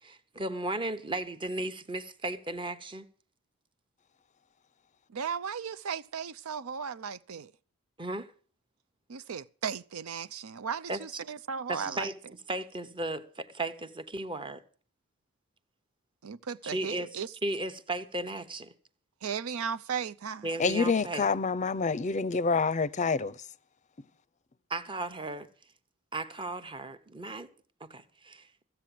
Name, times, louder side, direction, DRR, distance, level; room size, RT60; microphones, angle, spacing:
voice 1, 0.0-3.0 7.3-7.4 8.0-8.3 10.9-11.2 11.7-12.2 12.5-14.6 16.6-18.7 20.4-21.3 24.7-25.5 26.1-27.5 27.8-28.5, right 2 dB, 25° right, 1.0 m, -35 dB
voice 2, 5.1-7.5 9.1-12.1 16.2-17.3 19.2-20.5, right 6 dB, 80° right, 0.6 m, -36 dB
voice 3, 20.6-23.3, left 4 dB, 35° left, 0.6 m, -27 dB
15.0 x 8.0 x 7.6 m
head